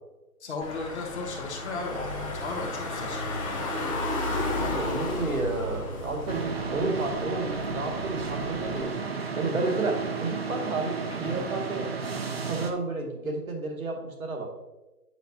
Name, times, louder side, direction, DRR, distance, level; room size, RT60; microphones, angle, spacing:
voice 1, 0.4-3.7 11.2-11.5, left 3 dB, 45° left, 1 dB, 1.5 m, -36 dB
Car / Engine, 0.6-8.8, left 2 dB, 20° left, 1.1 m, -33 dB
voice 2, 4.5-11.9 12.4-14.5, right 3 dB, 60° right, 2 dB, 2.1 m, -31 dB
sound 1, 6.3-12.7, right 5 dB, 40° right, 0.7 m, -33 dB
9.1 x 6.7 x 2.7 m, 1.1 s
figure-of-eight pair, 150°, 47 cm